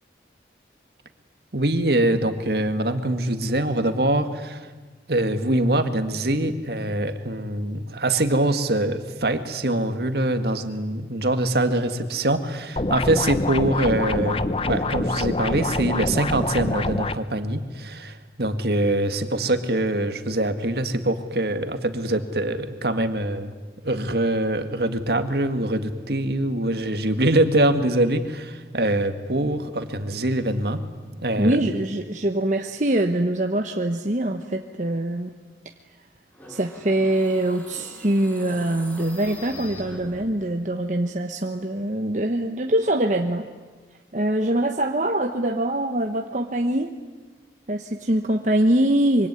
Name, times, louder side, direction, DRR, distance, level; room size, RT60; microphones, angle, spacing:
voice 1, 1.5-4.6 5.1-23.5 23.8-30.8 31.2-31.7, right 1 dB, 60° right, 8 dB, 2.0 m, -24 dB
sound 1, 12.8-17.1, left 2 dB, 30° left, 0.8 m, -25 dB
voice 2, 31.4-35.3 36.5-43.5 44.1-46.9 47.7-49.3, right 1 dB, 45° right, 4 dB, 1.1 m, -23 dB
sound 2, 36.3-40.6, equal, 10° left, 4.2 m, -43 dB
25.5 x 24.5 x 9.7 m, 1.4 s
head